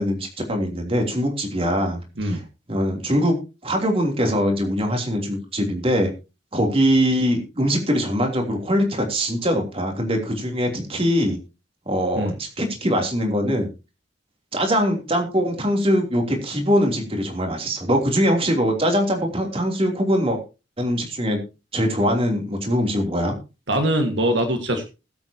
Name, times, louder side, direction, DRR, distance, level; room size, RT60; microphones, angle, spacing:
voice 1, 0.0-2.4 2.7-6.1 6.5-11.4 11.9-13.7 14.5-20.4 20.8-21.4 21.7-23.3, equal, 30° right, 3 dB, 3.1 m, -22 dB
voice 2, 23.7-24.9, right 1 dB, 70° right, 5 dB, 1.7 m, -22 dB
20.0 x 8.1 x 2.9 m, 0.29 s
head